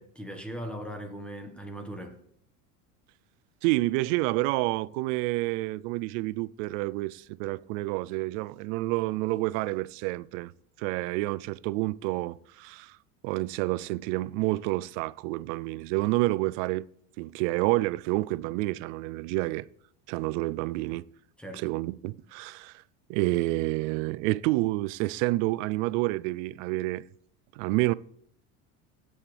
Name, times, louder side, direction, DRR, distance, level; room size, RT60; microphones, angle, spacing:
voice 1, 0.0-2.2 21.4-21.6, equal, 5° left, 1.4 m, -39 dB
voice 2, 3.6-10.5 10.8-13.0 13.2-16.9 17.2-19.7 20.1-21.0 21.5-22.8 23.1-27.0 27.5-27.9, right 20 dB, 80° right, 0.5 m, -29 dB
16.5 x 8.6 x 3.4 m
supercardioid pair, 125°, 37 cm